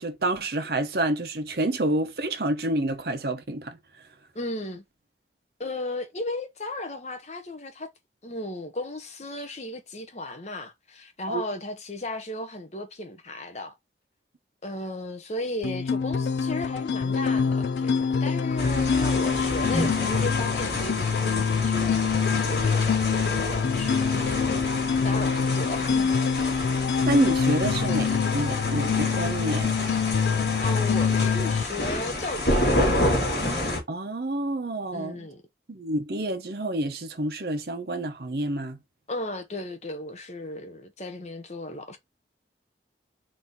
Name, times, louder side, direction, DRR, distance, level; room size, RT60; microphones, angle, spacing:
voice 1, 0.0-3.8 11.3-11.4 27.0-29.7 33.9-35.3 35.7-38.8, right 1 dB, 60° right, 0.8 m, -28 dB
voice 2, 4.3-4.8 5.6-7.9 8.2-13.7 14.6-22.0 22.5-24.7 25.0-26.1 30.6-32.9 34.9-35.4 39.1-42.0, left 2 dB, 40° left, 0.8 m, -35 dB
sound 1, 15.6-31.6, left 6 dB, 75° left, 0.3 m, -25 dB
sound 2, 18.6-33.8, left 1 dB, 60° left, 2.3 m, -29 dB
4.2 x 2.7 x 3.6 m
head